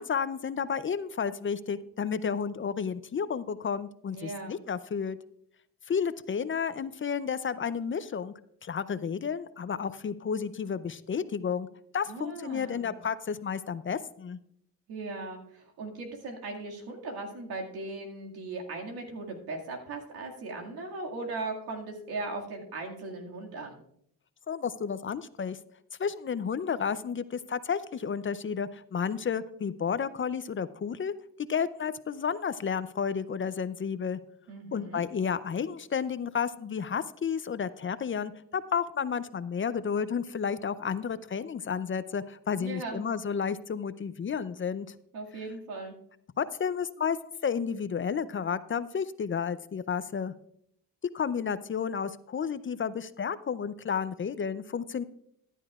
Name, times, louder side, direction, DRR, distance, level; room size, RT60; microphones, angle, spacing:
voice 1, 0.0-5.2 5.9-8.3 8.6-11.7 11.9-14.4 24.5-25.6 26.0-31.1 31.5-34.2 34.7-44.9 46.4-47.2 47.4-50.3 51.1-55.0, left 6 dB, 35° left, 15 dB, 0.5 m, -31 dB
voice 2, 4.1-4.6 12.1-13.0 14.9-23.8 34.5-35.0 42.6-43.0 45.1-45.9, right 3 dB, 90° right, 0 dB, 2.1 m, -38 dB
14.5 x 11.0 x 2.4 m, 0.68 s
cardioid pair, 80°, 36 cm